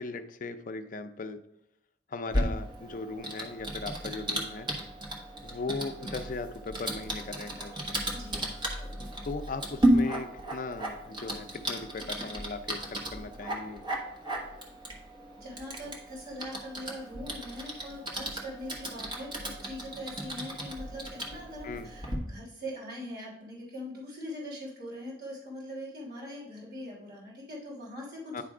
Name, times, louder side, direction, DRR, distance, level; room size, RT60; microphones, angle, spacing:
voice 1, 0.0-1.4 2.1-4.7 5.4-8.0 9.2-13.8 21.6-21.9 28.3-28.4, left 3 dB, 50° left, 8 dB, 0.5 m, -38 dB
Typing, 2.3-22.2, right 1 dB, 25° right, 1.3 m, -34 dB
voice 2, 8.1-8.5 15.3-28.4, equal, 60° right, -5 dB, 3.0 m, -42 dB
9.9 x 3.4 x 4.8 m, 0.80 s
head